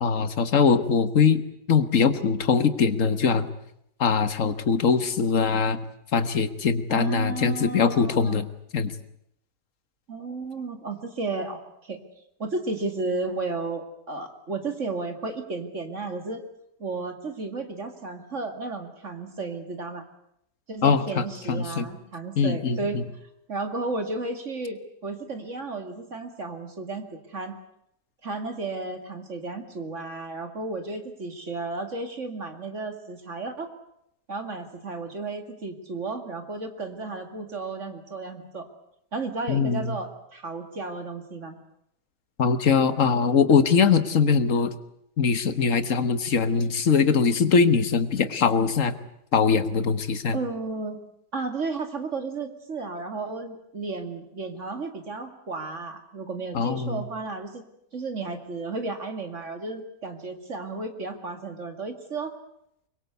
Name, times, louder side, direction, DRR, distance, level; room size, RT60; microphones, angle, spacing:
voice 1, 0.0-1.4 1.7-3.5 4.0-5.8 6.1-8.5 8.7-8.9 20.8-21.9 22.4-23.0 39.5-40.0 42.4-44.7 45.2-49.0 49.3-50.4 56.5-57.0, left 5 dB, 55° left, 12 dB, 1.7 m, -22 dB
voice 2, 6.9-8.4 10.1-12.0 12.4-16.4 16.8-20.1 20.7-23.0 23.5-27.5 28.2-33.7 34.3-38.7 39.1-41.6 50.3-51.0 51.3-57.6 57.9-62.3, right 3 dB, 45° right, 7 dB, 2.6 m, -33 dB
24.0 x 22.0 x 8.2 m, 0.77 s
omnidirectional pair, 1.7 m